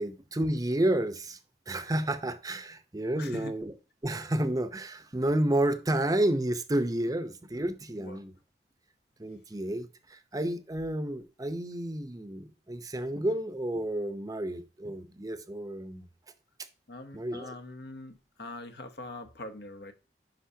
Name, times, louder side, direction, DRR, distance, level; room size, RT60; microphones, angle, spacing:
voice 1, 0.0-1.4 1.7-3.7 4.0-8.3 9.2-16.0 17.1-17.5, right 1 dB, 20° right, 0.7 m, -30 dB
voice 2, 3.1-3.6 7.9-8.2 16.9-19.9, left 2 dB, 65° left, 1.0 m, -43 dB
10.0 x 5.5 x 2.8 m
head